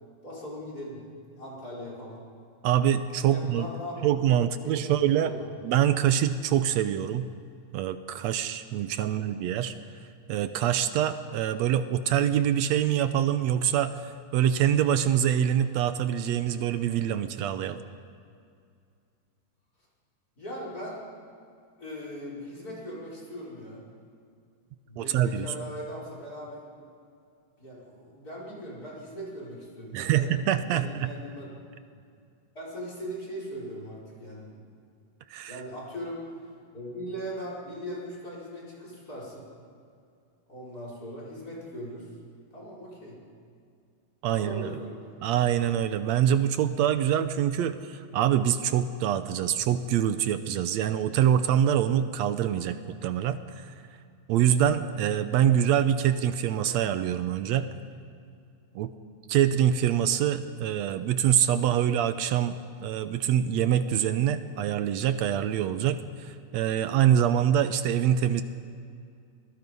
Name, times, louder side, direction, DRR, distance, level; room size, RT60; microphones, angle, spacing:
voice 1, 0.2-1.0 1.4-2.2 3.2-4.2 4.6-5.5 9.0-9.3 20.4-21.0 21.8-23.8 24.9-26.6 27.6-30.4 30.7-31.5 32.5-34.6 35.5-36.2 36.7-39.5 40.5-42.1 42.5-43.2 44.4-45.3, equal, 25° left, -4 dB, 5.9 m, -39 dB
voice 2, 2.6-3.7 4.0-5.3 5.6-7.3 7.7-9.7 10.3-17.8 25.0-25.5 29.9-31.1 35.3-35.6 44.2-44.7 45.2-53.7 54.3-57.7 58.7-58.9 59.3-68.4, right 10 dB, 75° right, 11 dB, 1.7 m, -25 dB
27.5 x 21.0 x 5.4 m, 2.4 s
omnidirectional pair, 3.8 m